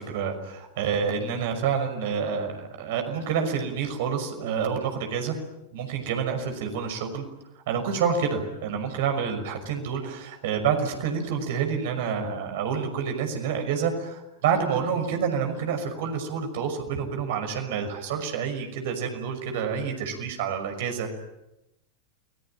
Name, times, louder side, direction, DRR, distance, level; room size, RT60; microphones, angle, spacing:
voice 1, 0.0-5.3 5.7-7.2 7.7-21.1, right 6 dB, 55° right, 5 dB, 5.9 m, -28 dB
29.5 x 21.0 x 9.0 m, 0.92 s
figure-of-eight pair, 90°, 0 cm